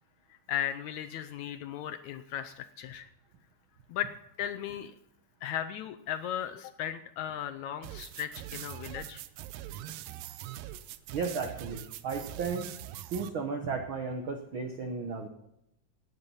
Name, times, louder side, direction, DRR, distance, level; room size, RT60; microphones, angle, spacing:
voice 1, 0.5-3.1 3.9-4.1 4.4-4.9 5.4-9.2, left 10 dB, 75° left, 9 dB, 1.8 m, -36 dB
sound 1, 7.8-13.3, right 13 dB, 90° right, 2.3 m, -42 dB
voice 2, 11.1-12.7 13.1-15.3, right 5 dB, 75° right, 5 dB, 1.2 m, -34 dB
17.5 x 8.9 x 5.5 m, 0.79 s
omnidirectional pair, 3.8 m